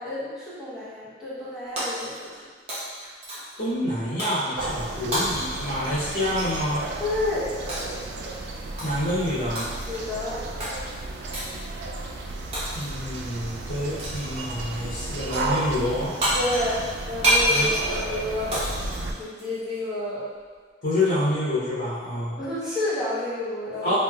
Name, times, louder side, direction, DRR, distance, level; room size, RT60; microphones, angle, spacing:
voice 1, 0.0-2.4 7.0-7.5 9.9-10.4 16.3-18.6 19.2-20.3 22.4-23.9, left 2 dB, 5° right, -11 dB, 0.8 m, -30 dB
Shatter, 1.8-2.4 2.7-3.6 4.2-4.4 5.1-6.7 7.7-8.0 8.8-9.1 9.5-10.0 10.6-10.8 11.3-11.6 12.5-13.1 14.0-14.4 15.9-16.0 16.2-19.8, right 1 dB, 35° right, 0.8 m, -28 dB
voice 2, 3.6-6.8 8.8-9.7 12.7-16.1 17.5-17.7 20.8-22.4 23.8-23.9, left 1 dB, 90° left, -11 dB, 0.8 m, -27 dB
sound 1, 4.6-19.1, right 2 dB, 70° right, 0.3 m, -33 dB
3.1 x 2.7 x 2.3 m, 1.5 s
head